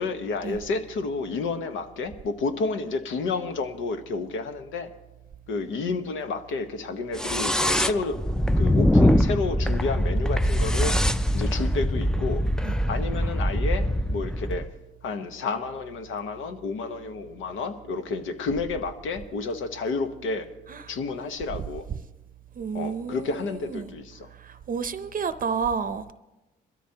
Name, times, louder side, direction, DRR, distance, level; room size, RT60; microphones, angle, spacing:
voice 1, 0.0-4.9 5.5-8.2 8.6-11.0 11.3-12.4 12.9-14.7 15.0-20.5 20.9-21.9 22.7-24.3, left 3 dB, 85° left, 8 dB, 1.2 m, -30 dB
sound 1, 7.1-14.7, equal, 5° left, 0.4 m, -23 dB
voice 2, 22.6-23.3 23.7-23.9 24.7-26.1, right 6 dB, 45° right, 11 dB, 0.7 m, -29 dB
22.0 x 13.5 x 2.9 m, 1.0 s
cardioid pair, 90°, 20 cm